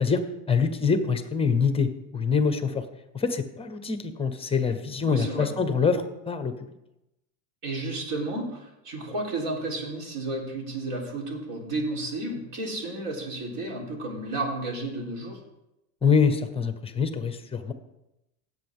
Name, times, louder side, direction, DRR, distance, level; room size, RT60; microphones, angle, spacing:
voice 1, 0.5-2.8 3.1-6.7 16.0-17.7, left 5 dB, 10° left, 10 dB, 0.8 m, -25 dB
voice 2, 5.0-5.5 7.6-15.4, right 2 dB, 60° right, -1 dB, 3.9 m, -32 dB
16.5 x 8.0 x 3.7 m, 0.92 s
supercardioid pair, 130°, 47 cm